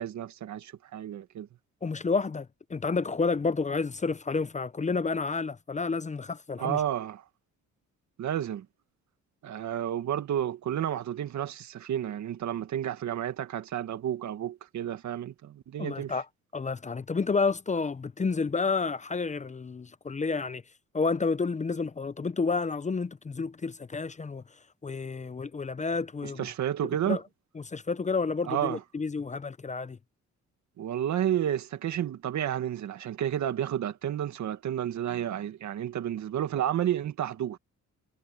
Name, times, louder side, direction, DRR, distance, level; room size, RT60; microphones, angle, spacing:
voice 1, 0.0-1.5 6.6-7.2 8.2-8.7 9.4-16.1 26.2-27.2 28.5-28.8 30.8-37.6, right 10 dB, 70° right, 1.9 m, -31 dB
voice 2, 1.8-6.8 15.8-16.2 16.5-20.6 20.9-24.4 24.8-26.4 27.1-27.2 27.6-30.0, left 4 dB, 25° left, 0.7 m, -30 dB
cardioid pair, 90°, 30 cm